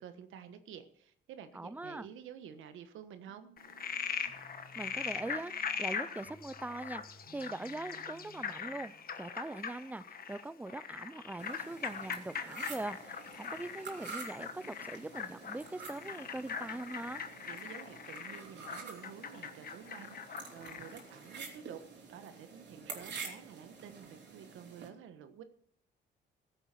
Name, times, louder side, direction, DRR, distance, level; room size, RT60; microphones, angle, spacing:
voice 1, 0.0-3.5 17.5-21.8 22.1-25.4, right 8 dB, 85° right, 10 dB, 1.3 m, -50 dB
voice 2, 1.5-2.1 4.7-5.5 5.8-17.2, right 2 dB, 10° right, 18 dB, 0.5 m, -42 dB
sound 1, 3.3-9.2, right 3 dB, 40° right, 4.0 m, -60 dB
Frog, 3.6-21.0, left 6 dB, 50° left, 1.2 m, -41 dB
sound 2, 11.4-24.9, right 5 dB, 60° right, 3.4 m, -49 dB
15.0 x 8.0 x 5.8 m, 0.65 s
cardioid pair, 90°, 20 cm